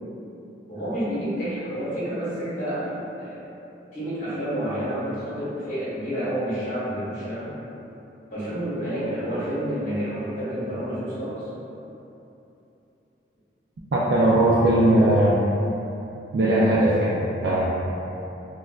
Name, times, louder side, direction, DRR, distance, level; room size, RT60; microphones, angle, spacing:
voice 1, 0.7-3.4 3.9-7.5 8.3-11.5, equal, 45° left, -11 dB, 1.2 m, -29 dB
voice 2, 13.9-15.4 16.3-17.7, right 1 dB, 65° right, -7 dB, 0.4 m, -19 dB
4.3 x 2.3 x 2.3 m, 2.9 s
head